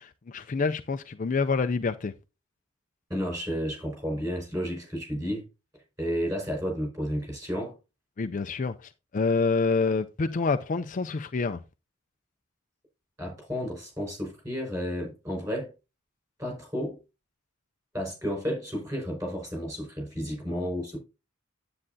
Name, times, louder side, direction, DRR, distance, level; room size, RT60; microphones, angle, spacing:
voice 1, 0.0-2.1 8.2-11.6, left 4 dB, 35° left, 0.4 m, -27 dB
voice 2, 3.1-5.5 6.0-7.8 13.2-15.7 16.4-17.0 17.9-21.0, equal, 15° right, 5.1 m, -32 dB
9.9 x 8.6 x 2.7 m
head